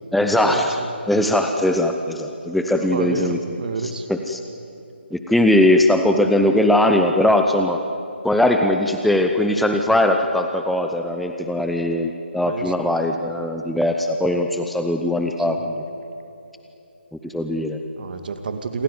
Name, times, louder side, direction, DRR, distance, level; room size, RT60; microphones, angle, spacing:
voice 1, 0.1-0.8 1.1-3.4 4.1-4.4 5.1-7.8 8.2-15.8 17.2-17.8, left 1 dB, ahead, 4 dB, 0.8 m, -20 dB
voice 2, 2.8-4.1 12.4-12.7 15.4-15.6 18.0-18.8, right 5 dB, 50° right, 8 dB, 2.3 m, -29 dB
27.5 x 15.5 x 9.6 m, 2.8 s
figure-of-eight pair, 150°, 6 cm